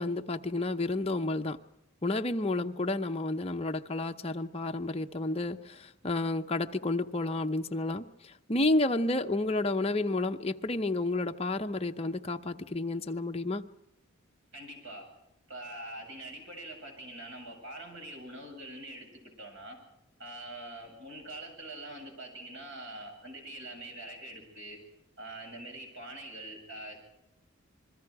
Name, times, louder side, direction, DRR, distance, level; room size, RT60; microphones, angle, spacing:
voice 1, 0.0-1.6 2.0-8.1 8.5-13.6, left 2 dB, 30° left, 0.8 m, -30 dB
voice 2, 14.5-15.1 15.5-19.1 19.4-19.8 20.2-24.8 25.2-27.0, right 1 dB, 65° right, 7.6 m, -44 dB
27.5 x 21.5 x 4.8 m
head